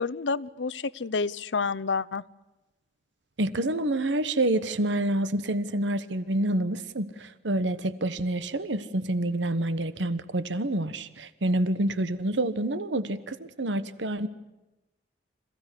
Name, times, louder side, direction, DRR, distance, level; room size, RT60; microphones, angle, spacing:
voice 1, 0.0-2.2, left 4 dB, 90° left, 17 dB, 0.7 m, -29 dB
voice 2, 3.4-14.3, right 1 dB, 90° right, 14 dB, 1.2 m, -28 dB
27.0 x 16.0 x 10.0 m, 1.0 s
head